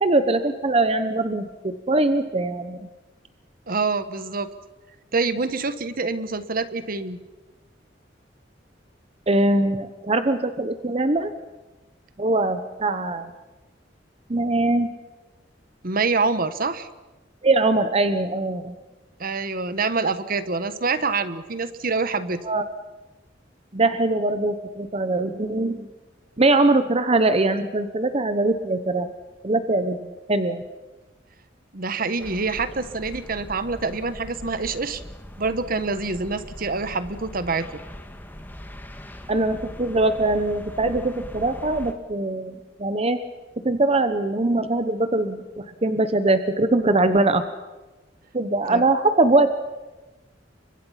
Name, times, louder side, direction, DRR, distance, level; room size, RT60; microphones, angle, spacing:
voice 1, 0.0-2.9 9.3-11.3 12.2-13.3 14.3-14.9 17.4-18.8 22.4-22.6 23.7-25.9 26.4-29.1 29.4-30.6 39.3-43.2 43.6-47.4 48.3-49.5, right 2 dB, 35° right, 10 dB, 1.0 m, -22 dB
voice 2, 3.7-4.5 5.1-7.2 15.8-16.9 19.2-22.4 31.7-35.0 35.4-37.7 48.7-48.8, right 4 dB, 50° right, 12 dB, 1.3 m, -26 dB
sound 1, 32.2-41.9, equal, 10° left, 1.8 m, -41 dB
30.0 x 24.0 x 5.8 m, 1.1 s
head